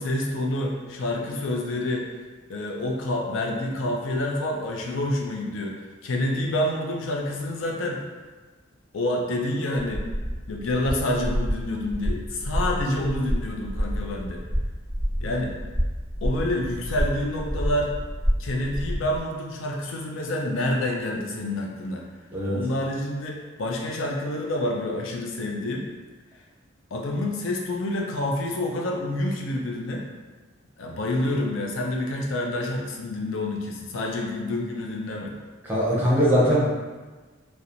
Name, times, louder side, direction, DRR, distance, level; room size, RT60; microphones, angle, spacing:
voice 1, 0.0-2.1 2.5-8.0 8.9-10.0 10.5-14.4 15.2-15.5 16.2-17.9 18.4-22.0 22.5-25.9 26.9-30.0 30.8-35.3, left 1 dB, 70° left, -1 dB, 0.4 m, -28 dB
sound 1, 9.7-19.2, equal, 25° left, 0.8 m, -29 dB
voice 2, 35.6-36.7, equal, 10° right, -8 dB, 0.6 m, -21 dB
2.9 x 2.1 x 2.4 m, 1.3 s
head